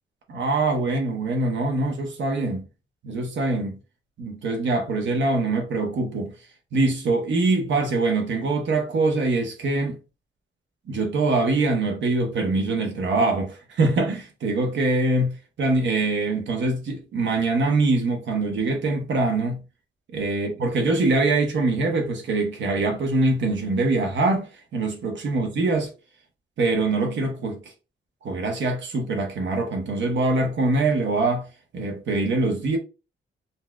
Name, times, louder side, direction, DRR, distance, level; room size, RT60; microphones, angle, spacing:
voice 1, 0.3-2.7 3.0-3.8 4.2-6.3 6.7-10.0 10.9-19.6 20.1-25.9 26.6-27.7 28.2-31.5 31.7-32.8, right 2 dB, 65° right, 0.9 m, -23 dB
4.0 x 2.3 x 2.3 m
wide cardioid pair, 145°, 20 cm